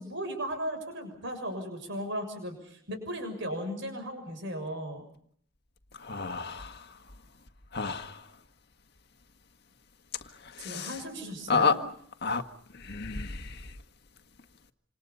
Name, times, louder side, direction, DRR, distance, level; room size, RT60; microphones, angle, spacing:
voice 1, 0.0-5.1 10.6-11.8, equal, 60° right, 6.8 m, -36 dB
voice 2, 6.0-7.0 7.7-8.3 10.4-11.0 11.5-11.8 12.2-12.4 12.7-13.7, left 5 dB, 55° left, 1.7 m, -31 dB
28.0 x 27.5 x 5.5 m
head